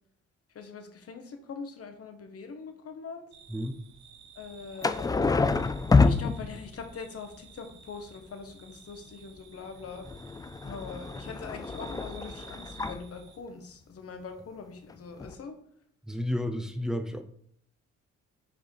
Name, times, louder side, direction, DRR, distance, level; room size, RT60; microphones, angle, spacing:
voice 1, 0.5-3.2 4.3-5.1 6.0-10.1 10.6-15.6, left 5 dB, 50° left, 5 dB, 1.3 m, -42 dB
sound 1, 3.3-13.4, right 6 dB, 70° right, 1.0 m, -53 dB
sound 2, 4.8-6.9 9.8-13.1 14.9-15.0 15.2-15.3, left 4 dB, 15° left, 0.3 m, -27 dB
voice 2, 16.1-17.2, left 1 dB, ahead, 6 dB, 0.7 m, -31 dB
6.6 x 5.0 x 3.4 m, 0.69 s
cardioid pair, 90°, 30 cm